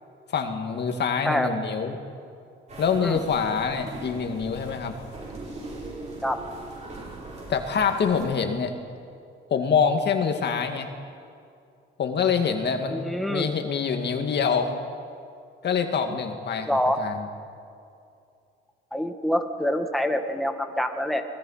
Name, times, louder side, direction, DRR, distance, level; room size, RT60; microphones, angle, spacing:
voice 1, 0.3-2.0 2.8-4.9 7.5-8.7 9.5-10.9 12.0-14.7 15.6-16.7 17.0-17.3, left 6 dB, 60° left, 5 dB, 2.1 m, -25 dB
sound 1, 2.7-8.3, right 2 dB, 35° right, 7.6 m, -40 dB
voice 2, 12.9-13.5 16.7-17.0 18.9-21.2, equal, ahead, 4 dB, 1.8 m, -26 dB
24.0 x 20.0 x 5.8 m, 2.5 s
cardioid pair, 90°, 20 cm